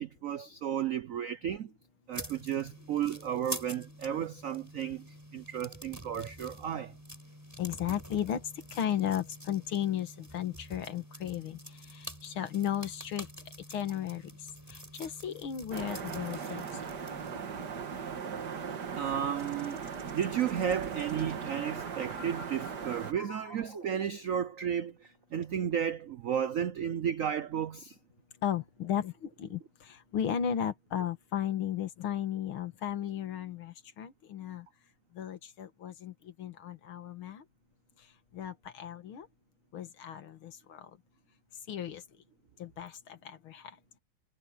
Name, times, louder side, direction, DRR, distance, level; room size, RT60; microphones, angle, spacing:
voice 1, 0.0-1.7 2.1-6.9 19.0-28.0, right 9 dB, 85° right, 0.7 m, -33 dB
sound 1, 2.1-17.4, equal, 10° right, 7.7 m, -47 dB
voice 2, 7.6-8.4 8.7-11.6 12.2-13.3 13.7-14.2 15.0-16.6 28.4-29.1 29.4-29.6 30.1-34.6 35.2-36.1 36.4-37.4 38.3-39.3 39.7-40.5 41.7-42.0 42.6-42.9 43.5-43.6, left 10 dB, 90° left, 2.3 m, -34 dB
sound 2, 15.7-23.1, right 6 dB, 55° right, 2.1 m, -39 dB
sound 3, 19.4-24.5 24.8-26.0 26.7-29.7, left 1 dB, 35° right, 4.5 m, -52 dB
omnidirectional pair, 2.2 m